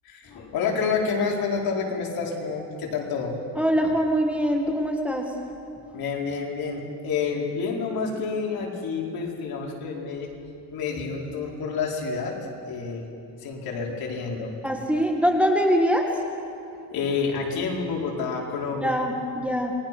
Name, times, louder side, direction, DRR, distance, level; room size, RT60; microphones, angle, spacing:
voice 1, 0.0-3.4 5.9-10.3 10.7-12.3 12.7-13.1 13.4-14.5 16.9-19.0, left 5 dB, 55° left, -1 dB, 4.8 m, -28 dB
voice 2, 3.6-5.3 14.6-16.1 18.8-19.7, equal, 5° right, 2 dB, 1.7 m, -23 dB
28.0 x 20.0 x 6.1 m, 2.7 s
cardioid pair, 125°, 42 cm